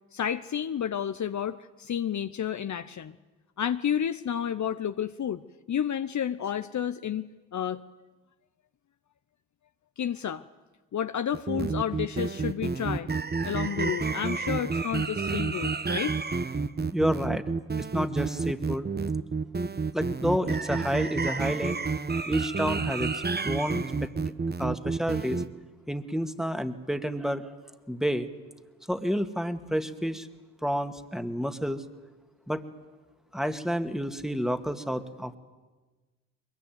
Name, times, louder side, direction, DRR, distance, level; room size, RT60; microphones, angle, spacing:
voice 1, 0.1-3.2 3.6-5.4 5.7-7.8 10.0-10.4 10.9-13.1 13.4-16.2, left 9 dB, 50° left, 11 dB, 0.9 m, -31 dB
sound 1, 11.3-25.5, right 4 dB, 25° right, 1.2 m, -30 dB
voice 2, 16.9-17.4 17.8-18.9 19.9-21.8 22.3-25.4 25.9-27.5 27.9-28.3 28.9-30.3 30.6-31.8 32.5-32.6 33.3-35.4, equal, ahead, 7 dB, 2.2 m, -30 dB
22.5 x 22.5 x 9.4 m, 1.3 s
hypercardioid pair, 45°, 37 cm